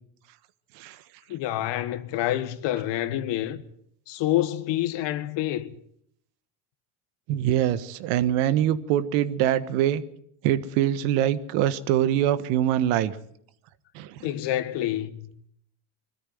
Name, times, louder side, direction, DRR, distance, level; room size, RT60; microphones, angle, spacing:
voice 1, 1.3-3.6 4.1-5.7 14.2-15.5, left 13 dB, 60° left, 1.6 m, -27 dB
voice 2, 7.3-10.0 10.4-13.2 13.9-14.2, right 11 dB, 70° right, 1.5 m, -24 dB
21.0 x 13.5 x 9.3 m
supercardioid pair, 105°, 49 cm